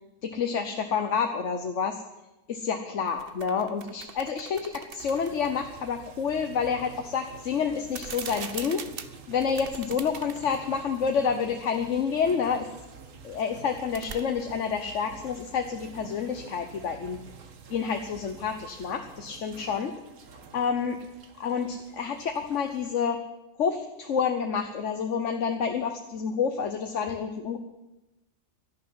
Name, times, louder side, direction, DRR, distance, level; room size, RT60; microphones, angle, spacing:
voice 1, 0.2-2.0 2.5-8.9 9.3-12.7 13.2-17.2 17.7-19.9 20.5-21.0 21.4-23.3 23.6-27.6, left 6 dB, 70° left, 6 dB, 1.3 m, -29 dB
sound 1, 3.1-5.6 7.8-10.6 11.0-11.1 13.6-14.2, right 7 dB, 50° right, 1.0 m, -42 dB
sound 2, 5.0-22.9, right 5 dB, 90° right, 1.6 m, -49 dB
12.5 x 11.5 x 9.4 m, 1.0 s
omnidirectional pair, 1.3 m